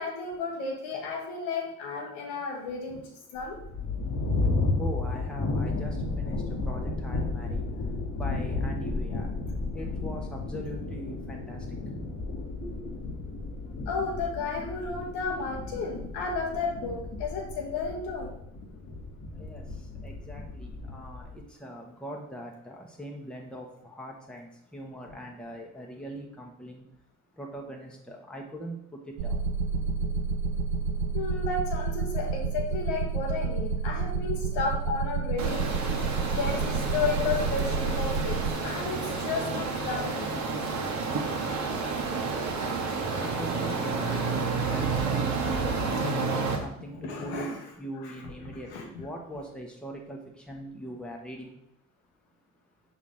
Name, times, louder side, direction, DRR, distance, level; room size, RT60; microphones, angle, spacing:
voice 1, 0.0-3.0 3.3-3.6 13.9-18.4 31.1-35.9 36.4-40.4 40.8-41.2 46.9-47.6 48.0-48.2 48.7-49.1, left 4 dB, 70° left, 1 dB, 1.3 m, -33 dB
sound 1, 3.4-21.4, left 3 dB, 40° left, 1.3 m, -33 dB
voice 2, 4.7-7.6 8.1-9.4 9.7-11.6 12.6-13.0 13.9-14.0 19.3-19.7 20.0-26.9 27.4-29.4 43.1-46.2 46.6-51.6, equal, ahead, 0 dB, 1.2 m, -41 dB
sound 2, 29.2-38.6, right 5 dB, 75° right, 0.5 m, -30 dB
sound 3, 35.4-46.6, right 4 dB, 45° right, 1.2 m, -30 dB
6.0 x 4.2 x 3.8 m, 0.78 s
figure-of-eight pair, 45°, 40 cm